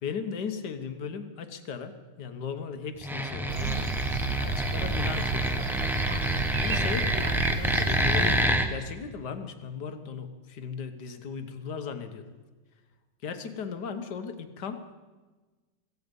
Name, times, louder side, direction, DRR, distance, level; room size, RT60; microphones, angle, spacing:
voice 1, 0.0-4.1 4.4-5.9 6.6-12.3 13.2-14.9, left 6 dB, 65° left, 8 dB, 1.7 m, -37 dB
sound 1, 3.0-8.7, equal, ahead, 0.6 m, -27 dB
sound 2, 3.5-8.5, right 7 dB, 75° right, 1.7 m, -33 dB
16.5 x 16.0 x 5.3 m, 1.3 s
omnidirectional pair, 2.0 m